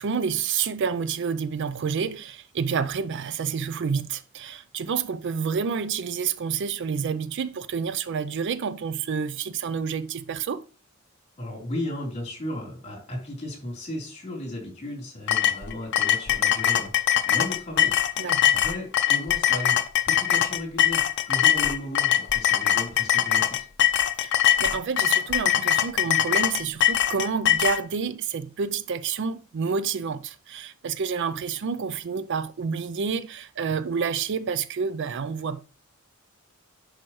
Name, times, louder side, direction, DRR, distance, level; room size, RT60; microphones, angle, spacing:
voice 1, 0.0-10.6 18.2-18.5 24.2-24.3 24.6-35.6, right 6 dB, 55° right, 0.4 m, -29 dB
voice 2, 11.4-19.8 20.0-23.7, left 1 dB, 30° left, 3.5 m, -35 dB
sound 1, 15.3-27.8, left 11 dB, 55° left, 0.6 m, -22 dB
10.5 x 4.8 x 3.1 m
head